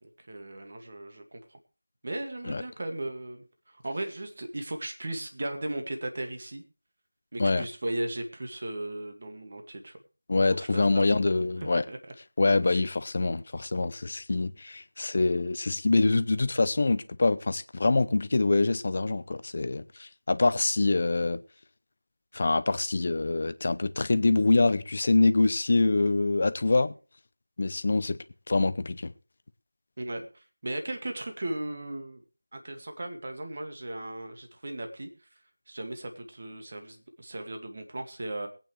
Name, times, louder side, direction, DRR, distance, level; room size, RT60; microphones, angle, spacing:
voice 1, 0.0-1.6 2.0-6.6 7.3-9.9 10.6-11.2 11.6-12.1 12.7-12.8 30.0-32.2 32.5-35.1 35.7-38.5, right 1 dB, 40° right, 2.1 m, -37 dB
voice 2, 10.3-11.8 12.4-21.4 22.3-26.9 27.6-28.2 28.5-29.1, left 3 dB, 35° left, 0.7 m, -25 dB
22.5 x 8.9 x 3.3 m
figure-of-eight pair, 170°, 0 cm